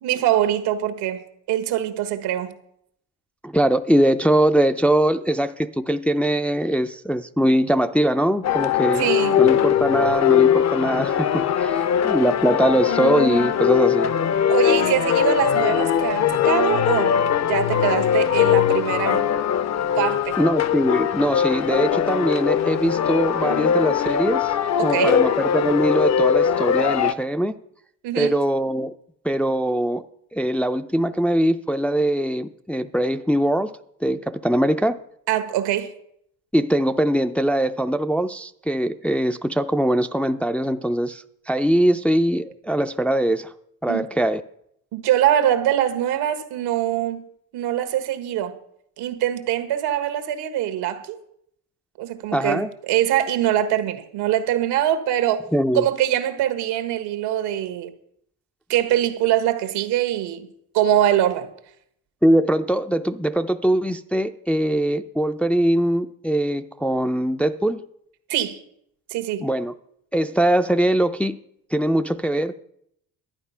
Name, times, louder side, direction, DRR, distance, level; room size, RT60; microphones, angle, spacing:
voice 1, 0.0-2.5 9.0-9.4 14.5-17.2 17.5-19.2 19.9-20.4 24.8-25.2 28.0-28.3 35.3-35.9 43.9-44.0 44.9-47.2 47.5-48.5 49.0-51.2 52.0-55.4 55.7-57.9 58.7-60.5 60.7-61.5 68.3-68.6 69.1-69.5, right 11 dB, 85° right, 1.5 m, -23 dB
voice 2, 3.4-9.0 9.4-14.1 20.4-27.6 28.2-28.9 29.2-30.0 30.3-33.7 34.0-35.0 36.5-43.5 43.8-44.4 52.3-52.7 55.5-55.8 62.2-67.8 69.4-69.7 70.1-71.4 71.7-72.5, right 1 dB, 5° left, 0.4 m, -22 dB
sound 1, 8.4-27.1, left 9 dB, 45° left, 0.7 m, -20 dB
11.5 x 9.5 x 5.6 m
cardioid pair, 100°, 39 cm